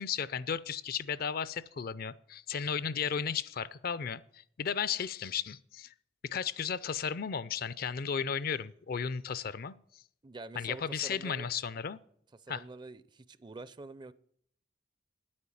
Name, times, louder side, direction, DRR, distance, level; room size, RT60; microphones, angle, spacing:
voice 1, 0.0-4.2 4.6-5.9 6.2-9.7 10.6-12.0 12.5-12.6, left 7 dB, 55° left, 18 dB, 0.5 m, -34 dB
voice 2, 10.2-11.5 12.3-14.1, right 3 dB, 25° right, 17 dB, 0.4 m, -46 dB
9.7 x 8.7 x 8.4 m, 0.66 s
head